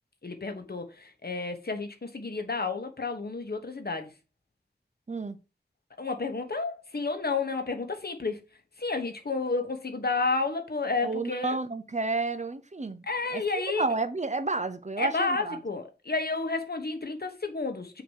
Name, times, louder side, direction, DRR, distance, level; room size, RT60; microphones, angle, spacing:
voice 1, 0.2-0.9 1.2-4.1 6.0-8.4 8.8-11.6 13.1-13.8 15.0-18.0, left 3 dB, 65° left, 1.1 m, -31 dB
voice 2, 11.0-15.6, right 3 dB, 45° right, 0.7 m, -31 dB
5.9 x 3.0 x 5.5 m
wide cardioid pair, 50°, 17 cm